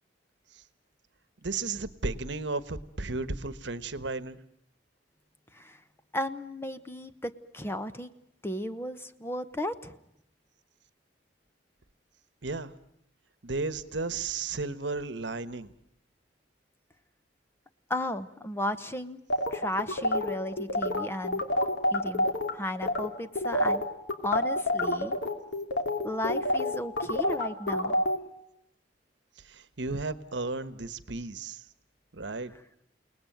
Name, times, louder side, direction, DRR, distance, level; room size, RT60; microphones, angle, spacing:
voice 1, 1.4-4.4 12.4-12.7 13.4-15.7 29.5-31.6 32.1-32.5, right 3 dB, 70° right, 13 dB, 1.3 m, -34 dB
voice 2, 6.1-8.1 8.4-9.9 17.9-19.2 19.5-21.4 21.9-22.3 22.5-23.9 24.2-25.1 26.0-28.0, left 1 dB, 15° left, 10 dB, 1.0 m, -34 dB
sound 1, 19.3-22.5 22.8-23.1 23.4-28.2, left 1 dB, 75° left, 2.9 m, -28 dB
29.5 x 19.0 x 9.2 m, 0.80 s
head